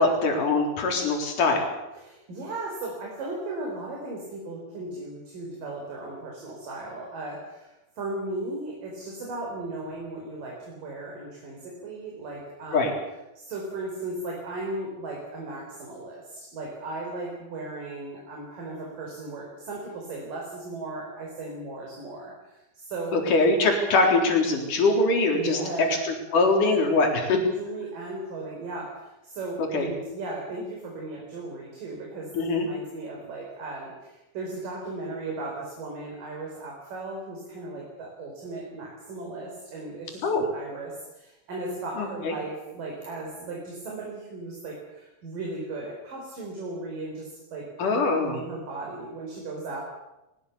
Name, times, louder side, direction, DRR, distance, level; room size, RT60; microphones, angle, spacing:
voice 1, 0.0-1.7 12.7-12.9 23.1-25.6 26.3-27.4 29.7-29.9 32.4-32.7 40.2-40.5 42.0-42.3 47.8-48.4, left 3 dB, 60° left, 2 dB, 5.4 m, -22 dB
voice 2, 1.9-13.0 13.4-23.2 25.3-26.0 27.3-47.9 48.3-49.8, right 2 dB, 65° right, -1 dB, 6.1 m, -36 dB
22.0 x 20.5 x 7.1 m, 0.96 s
omnidirectional pair, 4.1 m